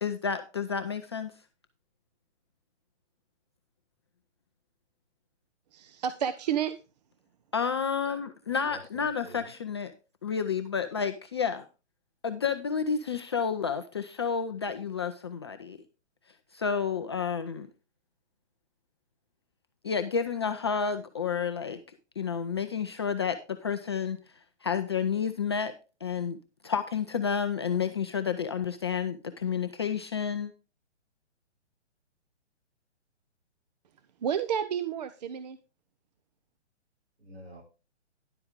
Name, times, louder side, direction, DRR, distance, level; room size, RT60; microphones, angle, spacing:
voice 1, 0.0-1.3 7.5-9.9 10.2-11.6 12.2-15.8 16.5-17.7 19.8-21.8 22.2-24.2 24.6-25.7 26.0-26.4 26.6-30.5, left 6 dB, 25° left, 7 dB, 0.4 m, -30 dB
voice 2, 5.7-6.8 34.2-35.6, right 8 dB, 35° right, 12 dB, 0.5 m, -30 dB
voice 3, 8.7-9.5 37.2-37.6, right 1 dB, 60° right, -1 dB, 5.6 m, -48 dB
11.0 x 7.8 x 3.6 m, 0.32 s
hypercardioid pair, 140°, 35 cm